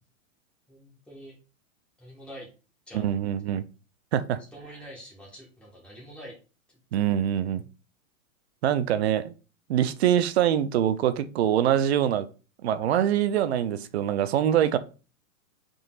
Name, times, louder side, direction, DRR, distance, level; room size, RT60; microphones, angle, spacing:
voice 1, 0.7-1.4 2.0-2.5 2.9-3.2 4.5-6.3 6.7-6.8, equal, 5° left, 1.2 m, -45 dB
voice 2, 2.9-3.6 4.1-4.4 6.9-7.6 8.6-9.3 9.7-12.3 12.6-14.8, right 10 dB, 50° right, 0.4 m, -24 dB
3.8 x 3.8 x 2.4 m
hypercardioid pair, 145°, 42 cm